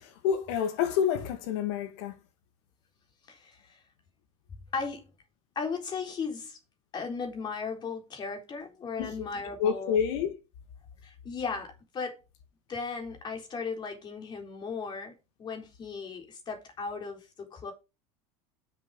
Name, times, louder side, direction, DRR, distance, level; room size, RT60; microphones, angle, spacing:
voice 1, 0.0-2.2 9.0-9.3 9.6-10.3, left 8 dB, 80° left, 2.3 m, -28 dB
voice 2, 3.3-3.8 4.7-5.0 5.6-6.6 6.9-10.0 11.0-12.2 12.7-15.1 15.4-17.7, left 5 dB, 30° left, 4.0 m, -36 dB
7.4 x 7.3 x 5.6 m
supercardioid pair, 135°, 14 cm